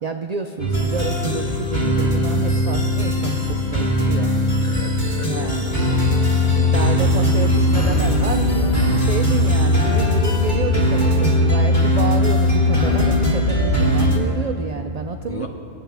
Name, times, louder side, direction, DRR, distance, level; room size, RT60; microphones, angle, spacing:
voice 1, 0.0-4.3 4.7-4.8 5.3-5.9 6.5-15.5, right 5 dB, 55° right, 5 dB, 0.4 m, -29 dB
sound 1, 0.6-14.2, left 1 dB, 15° left, 2.4 m, -19 dB
voice 2, 4.6-6.4 15.3-15.5, left 3 dB, 35° left, 3 dB, 0.8 m, -35 dB
20.0 x 8.8 x 3.4 m, 2.7 s
omnidirectional pair, 1.1 m